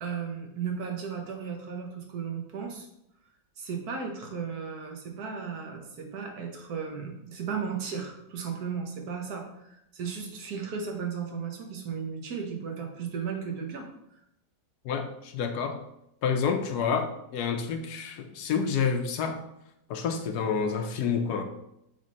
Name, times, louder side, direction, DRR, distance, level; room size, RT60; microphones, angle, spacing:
voice 1, 0.0-2.9 3.6-13.9, right 6 dB, 70° right, 2 dB, 1.5 m, -35 dB
voice 2, 14.8-15.8 16.2-19.4 19.9-21.4, left 6 dB, 75° left, 6 dB, 1.2 m, -28 dB
6.4 x 3.6 x 4.1 m, 0.81 s
omnidirectional pair, 1.7 m